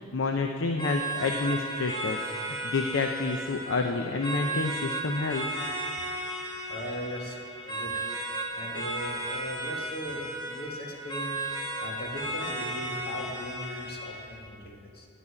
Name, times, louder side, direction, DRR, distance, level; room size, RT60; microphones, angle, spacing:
voice 1, 0.1-5.4, left 3 dB, 85° left, 5 dB, 0.6 m, -29 dB
sound 1, 0.8-14.4, right 1 dB, 25° left, 2.4 m, -35 dB
voice 2, 6.7-7.4 7.7-7.9 8.5-11.3 11.8-15.1, equal, 55° left, 0 dB, 1.8 m, -38 dB
9.2 x 8.2 x 8.7 m, 2.5 s
head